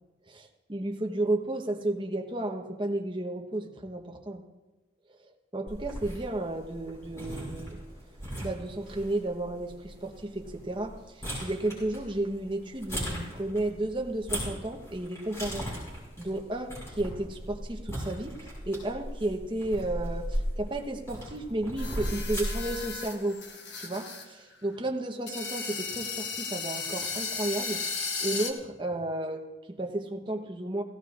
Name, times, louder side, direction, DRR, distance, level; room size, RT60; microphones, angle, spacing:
voice 1, 0.3-4.4 5.1-7.8 8.4-15.7 16.2-23.4 23.8-27.8 28.2-30.8, right 1 dB, 25° right, 3 dB, 0.9 m, -33 dB
sound 1, 5.7-22.8, equal, 15° left, 4.9 m, -38 dB
sound 2, 21.8-24.3 24.5-24.6 25.3-28.5, left 4 dB, 65° left, 1.3 m, -35 dB
16.5 x 16.0 x 2.4 m, 1.2 s
head